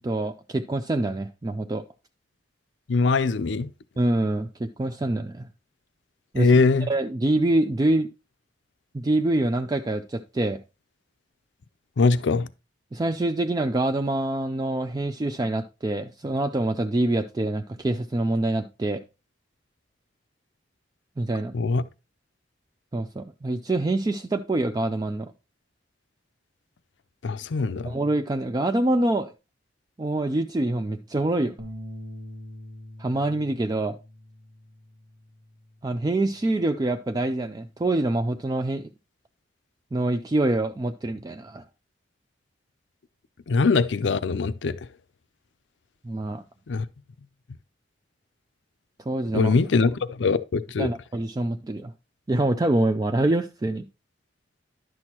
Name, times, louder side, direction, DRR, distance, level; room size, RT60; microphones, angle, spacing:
voice 1, 0.0-1.8 4.0-5.5 6.3-6.5 6.9-8.1 8.9-10.6 12.9-19.0 21.2-21.5 22.9-25.3 27.8-29.3 30.0-31.6 33.0-34.0 35.8-38.9 39.9-41.6 46.0-46.4 49.1-49.5 50.8-51.9 52.3-53.8, right 2 dB, 20° right, 0.3 m, -25 dB
voice 2, 2.9-3.7 6.4-6.9 12.0-12.5 21.5-21.8 27.2-27.9 43.5-44.8 46.7-46.8 49.3-50.9, left 4 dB, 75° left, 0.5 m, -22 dB
sound 1, 31.6-37.8, equal, 80° right, 1.7 m, -45 dB
10.5 x 6.2 x 2.9 m
head